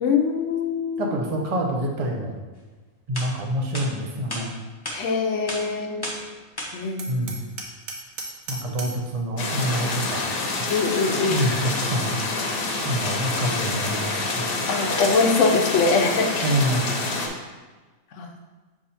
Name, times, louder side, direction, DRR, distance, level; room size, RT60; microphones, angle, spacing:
voice 1, 0.0-1.1 4.9-6.0 6.7-7.3 10.7-11.5 14.7-16.3 18.2-18.3, left 4 dB, 60° left, 4 dB, 0.9 m, -23 dB
voice 2, 1.0-2.3 3.1-4.5 7.1-7.4 8.5-10.2 11.3-12.6 12.8-14.5 16.4-16.9, right 1 dB, 35° right, 0 dB, 0.5 m, -26 dB
sound 1, 2.7-2.8 3.1-3.3 3.7-3.9 4.3-4.4 4.9-5.0 5.5-5.6 6.0-6.2 6.6-6.7, left 1 dB, 20° left, 0.7 m, -31 dB
Hammer, 7.0-9.1, right 3 dB, 80° right, 1.3 m, -36 dB
sound 2, 9.4-17.3, left 3 dB, 80° left, 1.4 m, -27 dB
6.5 x 3.7 x 4.2 m, 1.3 s
omnidirectional pair, 1.6 m